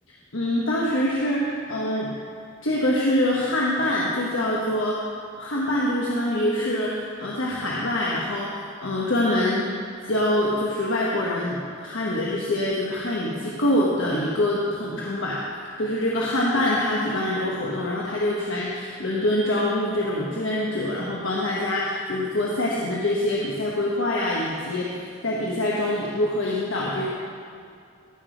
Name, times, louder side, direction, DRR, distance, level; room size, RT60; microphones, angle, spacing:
voice 1, 0.3-2.1 2.6-5.0 5.4-9.7 10.0-15.4 15.8-27.1, left 1 dB, 75° left, -5 dB, 1.2 m, -25 dB
14.5 x 6.0 x 5.1 m, 2.4 s
head